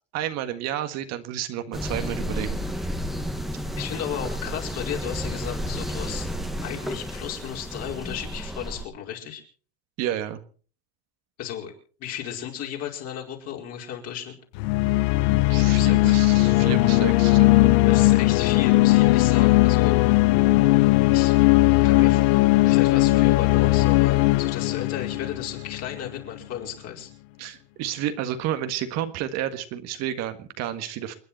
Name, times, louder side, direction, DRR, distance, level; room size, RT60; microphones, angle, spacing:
voice 1, 0.1-2.6 10.0-10.4 15.3-17.8 27.4-31.1, right 11 dB, 50° right, 8 dB, 1.7 m, -31 dB
sound 1, 1.7-8.9, equal, ahead, 1.5 m, -31 dB
voice 2, 3.8-6.3 6.6-9.4 11.4-11.7 12.0-14.4 15.5-16.2 17.9-20.0 21.1-21.3 21.8-22.3 22.6-27.1, left 9 dB, 50° left, 0 dB, 5.0 m, -34 dB
sound 2, 14.5-26.1, left 20 dB, 65° left, 0.9 m, -18 dB
29.0 x 9.8 x 4.3 m, 0.42 s
supercardioid pair, 130°, 33 cm